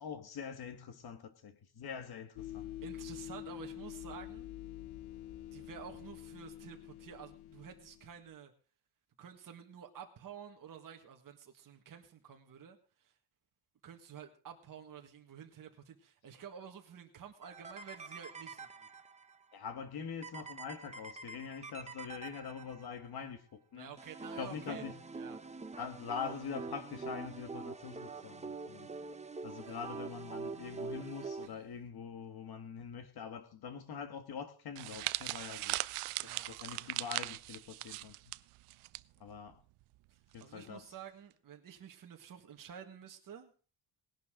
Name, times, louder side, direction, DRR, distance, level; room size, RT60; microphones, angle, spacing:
voice 1, 0.0-2.7 19.5-23.9 24.4-25.0 25.8-28.9 29.4-35.8 36.5-38.1 39.2-39.6 40.3-40.9, left 6 dB, 50° left, 1.7 m, -44 dB
sound 1, 2.4-8.2, left 13 dB, 75° left, 0.8 m, -47 dB
voice 2, 2.8-4.5 5.4-8.5 9.2-13.1 13.8-18.9 23.8-24.9 25.1-25.4 29.6-29.8 31.4-31.6 36.2-37.1 40.1-43.5, right 8 dB, 40° right, 1.8 m, -51 dB
sound 2, 17.4-19.4 20.2-23.0 24.0-31.5, right 4 dB, 15° right, 0.8 m, -45 dB
sound 3, 34.8-39.0 39.3-39.5 40.4-40.7, right 19 dB, 85° right, 0.6 m, -39 dB
19.0 x 11.5 x 3.8 m
cardioid pair, 160°, 49 cm